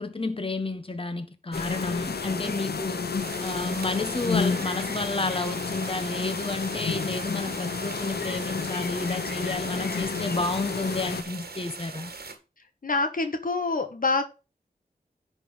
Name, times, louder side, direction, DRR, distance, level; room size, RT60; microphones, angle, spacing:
voice 1, 0.0-3.0 3.4-12.1, left 3 dB, 35° left, 1.3 m, -31 dB
sound 1, 1.5-11.2, left 5 dB, 90° left, 0.9 m, -31 dB
sound 2, 3.2-12.4, right 4 dB, 85° right, 1.6 m, -41 dB
voice 2, 12.8-14.2, left 3 dB, 60° left, 1.2 m, -26 dB
9.9 x 3.7 x 6.3 m
wide cardioid pair, 50°, 16 cm